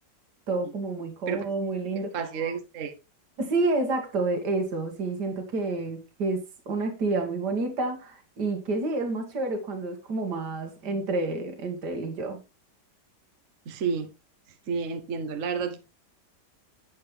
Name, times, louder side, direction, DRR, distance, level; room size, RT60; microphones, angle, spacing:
voice 1, 0.5-2.2 3.4-12.4, right 3 dB, 70° right, 2.5 m, -29 dB
voice 2, 2.1-2.9 13.7-14.1 14.7-15.8, right 5 dB, 50° right, 1.4 m, -30 dB
11.5 x 7.8 x 3.4 m
omnidirectional pair, 1.9 m